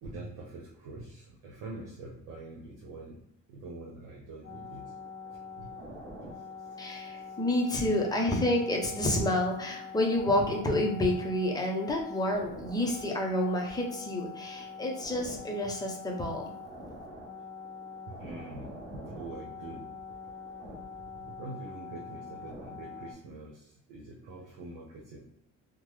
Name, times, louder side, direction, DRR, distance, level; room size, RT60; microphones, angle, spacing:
voice 1, 0.0-3.2 3.5-4.9 5.6-5.7 15.6-15.7 18.2-18.7 19.0-19.9 21.2-25.2, right 2 dB, 80° right, -3 dB, 0.9 m, -44 dB
sound 1, 4.4-23.1, left 4 dB, 40° right, 0.9 m, -44 dB
voice 2, 6.8-16.5, left 1 dB, 10° left, 0 dB, 0.6 m, -29 dB
3.6 x 2.1 x 3.1 m, 0.74 s
cardioid pair, 155°, 32 cm